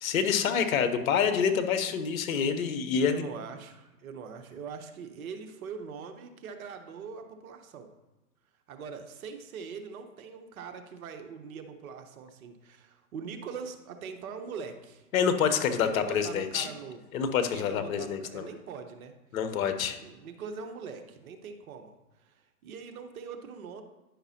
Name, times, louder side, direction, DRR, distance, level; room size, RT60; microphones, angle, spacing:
voice 1, 0.0-3.2 15.1-16.7 17.1-18.5 19.3-20.0, left 7 dB, 55° left, 9 dB, 1.0 m, -27 dB
voice 2, 3.0-7.9 8.7-15.0 15.7-17.0 17.4-19.1 19.9-21.9 22.2-23.8, right 6 dB, 55° right, 6 dB, 1.0 m, -42 dB
10.0 x 5.8 x 2.8 m, 1.0 s
hypercardioid pair, 125°, 49 cm